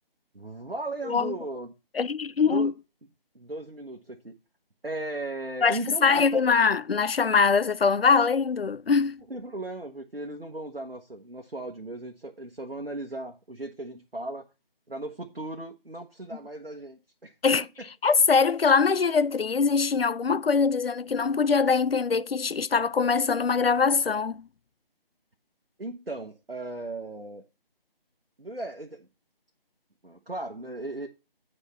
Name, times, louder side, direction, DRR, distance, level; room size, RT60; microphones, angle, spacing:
voice 1, 0.3-1.7 2.5-2.7 3.3-4.3 4.8-6.4 9.3-14.5 14.9-17.3 25.8-27.4 28.4-29.1 30.0-31.1, right 2 dB, 85° right, 1.2 m, -36 dB
voice 2, 1.9-2.7 5.6-9.2 17.4-17.7 18.0-24.4, left 5 dB, 80° left, 0.5 m, -23 dB
8.2 x 4.4 x 5.5 m
figure-of-eight pair, 165°, 29 cm